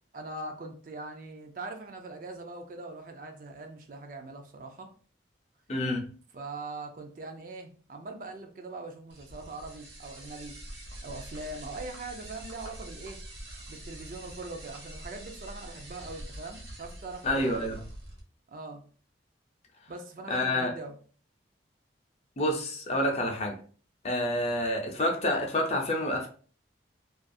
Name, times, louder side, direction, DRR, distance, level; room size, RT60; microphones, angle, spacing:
voice 1, 0.1-4.9 6.3-10.6 11.0-13.2 13.7-17.8 18.5-18.8 19.9-20.9, right 2 dB, 45° right, 0.4 m, -41 dB
voice 2, 5.7-6.1 17.2-17.8 20.3-20.7 22.4-23.5 24.0-26.3, left 1 dB, 35° left, 0.5 m, -28 dB
sound 1, 9.1-18.2, right 1 dB, 65° right, 0.9 m, -45 dB
2.4 x 2.3 x 2.5 m
head